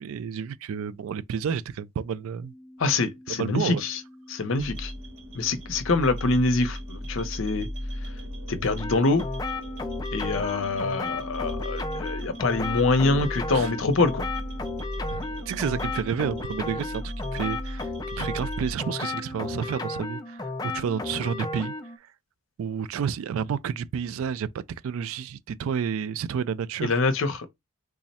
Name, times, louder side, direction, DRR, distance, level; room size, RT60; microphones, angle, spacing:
voice 1, 0.0-2.5 3.4-3.8 13.5-13.7 15.1-21.7 22.0-22.1 22.6-24.5 24.8-27.0, right 7 dB, 70° right, 0.3 m, -30 dB
sound 1, 2.4-12.9, left 1 dB, 20° right, 0.7 m, -49 dB
voice 2, 2.8-4.0 4.3-4.9 5.3-7.7 8.0-8.1 8.5-9.2 10.1-14.3 26.8-27.5, left 3 dB, 60° left, 0.6 m, -25 dB
sound 2, 4.6-18.7, equal, 85° right, 2.0 m, -37 dB
sound 3, 8.8-22.0, left 2 dB, 15° left, 0.3 m, -34 dB
3.5 x 2.1 x 4.0 m
head